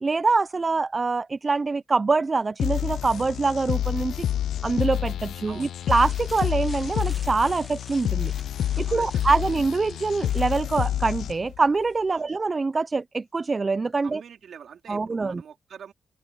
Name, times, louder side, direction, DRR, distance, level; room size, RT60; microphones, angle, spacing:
voice 1, 0.0-4.3 4.6-8.3 8.8-14.2 14.9-15.4, right 3 dB, 25° right, 0.3 m, -24 dB
sound 1, 2.6-11.6, left 11 dB, 85° left, 0.3 m, -28 dB
voice 2, 5.5-5.8 8.8-9.2 9.5-9.6 12.1-12.3 14.0-15.9, right 8 dB, 65° right, 4.0 m, -45 dB
sound 2, 5.8-10.8, equal, ahead, 2.0 m, -49 dB
open air
wide cardioid pair, 145°, 0 cm